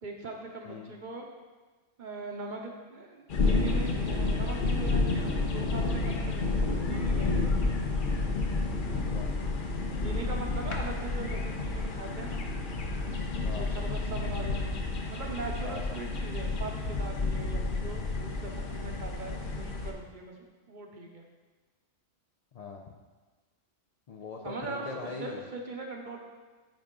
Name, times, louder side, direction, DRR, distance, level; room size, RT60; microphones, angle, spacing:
voice 1, 0.0-1.3 2.0-7.8 10.0-12.4 13.5-14.8 15.1-21.2 24.4-26.2, right 3 dB, 50° right, 1 dB, 0.7 m, -40 dB
sound 1, 3.3-19.9, left 3 dB, 50° left, 0.8 m, -30 dB
voice 2, 8.9-9.3 13.4-13.7 15.6-16.0 22.5-22.9 24.1-25.4, left 4 dB, 80° left, 1 dB, 0.3 m, -41 dB
10.0 x 3.6 x 3.7 m, 1.3 s
omnidirectional pair, 1.3 m